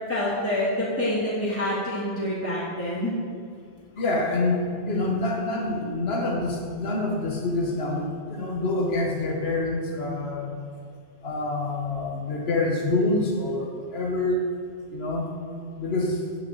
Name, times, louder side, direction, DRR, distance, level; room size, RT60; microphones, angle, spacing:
voice 1, 0.1-3.2, left 1 dB, 10° left, -9 dB, 2.2 m, -27 dB
voice 2, 4.0-10.5 11.2-14.4 14.9-15.3 15.8-16.2, left 2 dB, 65° left, 1 dB, 1.6 m, -26 dB
9.0 x 6.2 x 7.9 m, 2.1 s
omnidirectional pair, 1.1 m